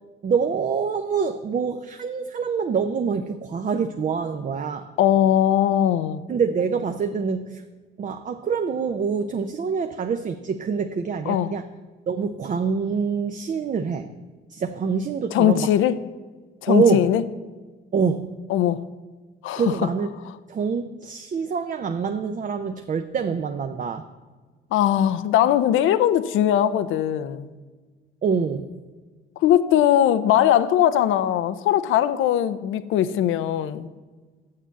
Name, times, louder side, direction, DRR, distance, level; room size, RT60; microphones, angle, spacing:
voice 1, 0.2-4.9 6.3-7.6 8.0-11.6 12.1-14.1 14.5-15.7 16.7-17.1 17.9-18.3 19.6-20.1 20.5-24.1 28.2-28.7, right 6 dB, 40° right, 7 dB, 0.6 m, -25 dB
voice 2, 5.0-6.2 11.3-11.5 15.3-16.0 16.6-17.2 18.5-18.8 19.4-19.9 24.7-27.5 29.4-33.9, left 11 dB, 85° left, 14 dB, 0.5 m, -20 dB
6.8 x 6.6 x 7.3 m, 1.4 s
cardioid pair, 90°, 20 cm